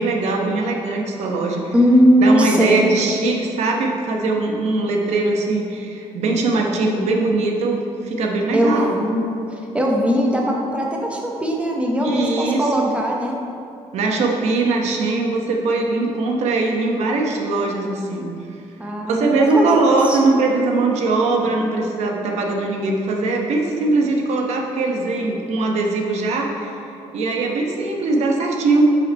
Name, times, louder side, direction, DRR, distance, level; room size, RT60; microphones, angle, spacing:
voice 1, 0.0-1.7 2.2-8.9 12.0-12.9 13.9-18.3 19.0-26.8 27.1-28.9, right 3 dB, 70° right, 1 dB, 0.9 m, -21 dB
voice 2, 1.7-2.9 8.5-9.2 9.5-13.4 18.8-20.2, equal, 10° right, -1 dB, 0.8 m, -19 dB
5.6 x 5.2 x 4.5 m, 2.7 s
cardioid pair, 145°, 12 cm